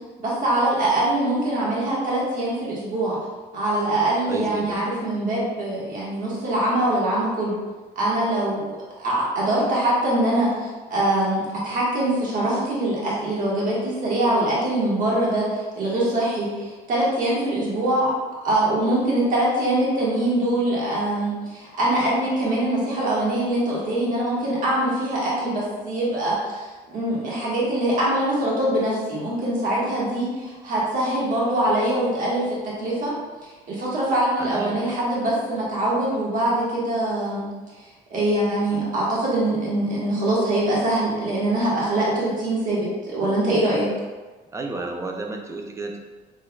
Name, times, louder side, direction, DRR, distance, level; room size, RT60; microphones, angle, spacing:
voice 1, 0.2-3.2 3.5-7.6 7.9-8.6 9.0-18.1 18.4-33.1 33.7-37.5 38.1-43.9, right 1 dB, 55° right, -6 dB, 1.3 m, -23 dB
voice 2, 4.3-4.8 34.4-35.0 44.5-46.0, right 3 dB, 15° right, 2 dB, 0.4 m, -32 dB
3.4 x 3.3 x 2.2 m, 1.3 s
cardioid pair, 110°, 17 cm